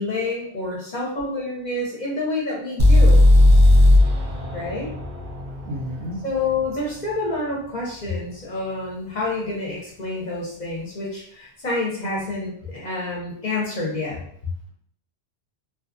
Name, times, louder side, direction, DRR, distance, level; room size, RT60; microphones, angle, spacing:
voice 1, 0.0-3.3 4.5-4.9 6.2-14.2, left 2 dB, 45° left, -4 dB, 0.7 m, -28 dB
sound 1, 2.8-6.7, left 1 dB, 55° right, 0.5 m, -16 dB
voice 2, 3.7-4.2 5.6-6.2, equal, 85° right, 2 dB, 0.9 m, -34 dB
2.5 x 2.3 x 2.5 m, 0.64 s
omnidirectional pair, 1.2 m